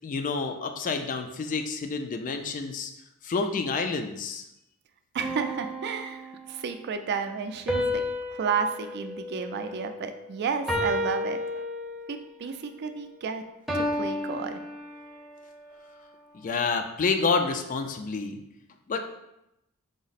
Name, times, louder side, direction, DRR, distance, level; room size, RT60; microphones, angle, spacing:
voice 1, 0.0-2.9 3.2-4.4 16.3-18.4 18.9-19.0, left 4 dB, 35° left, 6 dB, 0.3 m, -28 dB
voice 2, 5.1-8.0 8.3-11.4 12.1-13.4 13.7-14.6, right 6 dB, 50° right, 8 dB, 0.4 m, -32 dB
sound 1, 5.2-6.6 7.7-10.2 10.7-12.3 13.7-15.4, left 1 dB, ahead, 0.6 m, -32 dB
5.0 x 2.0 x 4.0 m, 0.86 s
head